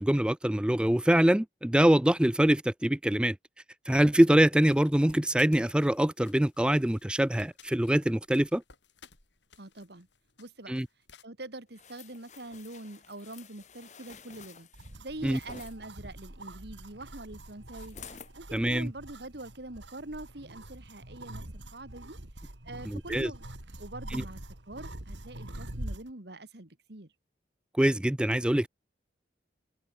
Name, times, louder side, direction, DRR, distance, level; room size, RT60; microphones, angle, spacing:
voice 1, 0.0-3.4 3.9-8.6 10.7-10.9 15.2-15.4 18.5-18.9 22.9-23.3 24.1-24.2 27.8-28.7, right 1 dB, 5° right, 0.3 m, -24 dB
sound 1, 4.6-11.3, left 6 dB, 75° left, 7.4 m, -58 dB
voice 2, 9.6-10.1 10.4-10.7 11.2-14.7 15.0-18.0 18.4-22.2 22.6-23.5 23.8-24.4 24.7-27.1, right 2 dB, 60° right, 2.1 m, -44 dB
sound 2, 11.7-15.8 17.7-18.4 18.9-19.0, left 6 dB, 40° left, 1.5 m, -51 dB
sound 3, 14.7-26.1, right 1 dB, 80° right, 3.3 m, -44 dB
head